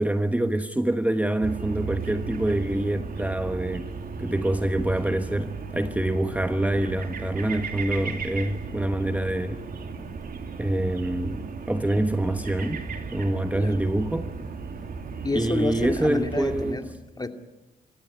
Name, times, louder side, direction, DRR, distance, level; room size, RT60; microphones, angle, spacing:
voice 1, 0.0-3.9 4.2-9.6 10.6-12.8 13.1-14.3 15.3-16.8, right 1 dB, 10° right, 1.2 m, -26 dB
sound 1, 1.4-16.7, right 5 dB, 65° right, 2.8 m, -35 dB
voice 2, 15.2-17.3, left 2 dB, 25° left, 2.6 m, -29 dB
27.0 x 15.0 x 9.6 m
cardioid pair, 65°, 16 cm